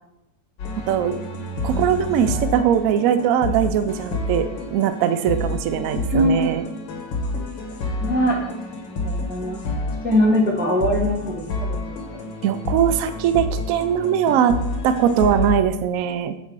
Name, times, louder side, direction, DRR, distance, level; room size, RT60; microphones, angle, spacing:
sound 1, 0.6-15.6, left 2 dB, 90° left, 1.8 m, -29 dB
voice 1, 0.9-1.2 1.6-4.4 4.7-6.6 12.4-14.6 14.8-16.3, right 9 dB, 75° right, 10 dB, 0.7 m, -20 dB
voice 2, 6.0-6.6 7.2-7.4 8.0-8.4 9.0-9.6 10.0-12.0, equal, 10° right, -2 dB, 0.7 m, -22 dB
7.3 x 4.2 x 4.7 m, 0.89 s
omnidirectional pair, 2.0 m